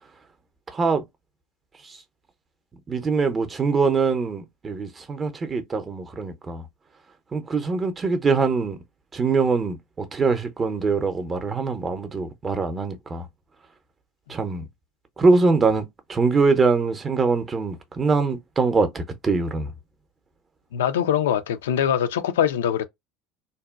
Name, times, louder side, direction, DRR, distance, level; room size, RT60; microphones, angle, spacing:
voice 1, 0.7-1.0 2.9-6.6 7.3-8.8 9.1-13.2 14.3-14.6 15.2-19.7, right 4 dB, 25° right, 0.6 m, -23 dB
voice 2, 20.7-22.8, left 9 dB, 70° left, 0.3 m, -23 dB
2.6 x 2.1 x 2.3 m
figure-of-eight pair, 70°, 0 cm